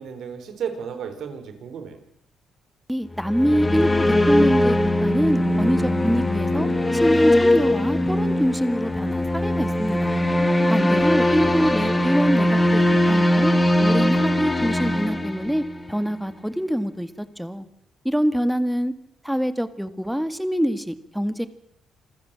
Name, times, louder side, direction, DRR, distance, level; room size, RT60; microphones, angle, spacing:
voice 1, 0.0-2.0 11.4-12.1, right 7 dB, 75° right, 8 dB, 4.2 m, -34 dB
voice 2, 2.9-10.3 10.7-12.8 13.1-13.5 13.8-17.7 18.0-18.9 19.2-21.5, equal, ahead, 12 dB, 1.9 m, -25 dB
sound 1, 3.1-16.0, left 1 dB, 15° left, 2.5 m, -21 dB
26.5 x 15.0 x 7.6 m, 0.76 s
cardioid pair, 80°, 0 cm